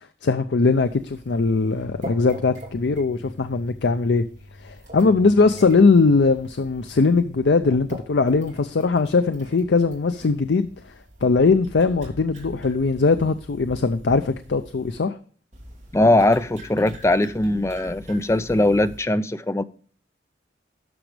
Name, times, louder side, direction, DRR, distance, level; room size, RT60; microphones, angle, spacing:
voice 1, 0.2-4.2 4.6-10.7 11.2-15.1, left 4 dB, 75° left, 0.5 m, -20 dB
sound 1, 0.6-15.0 15.5-19.0, equal, 40° right, 2.6 m, -43 dB
voice 2, 15.9-19.6, left 1 dB, 15° left, 0.4 m, -20 dB
12.0 x 6.2 x 3.3 m
head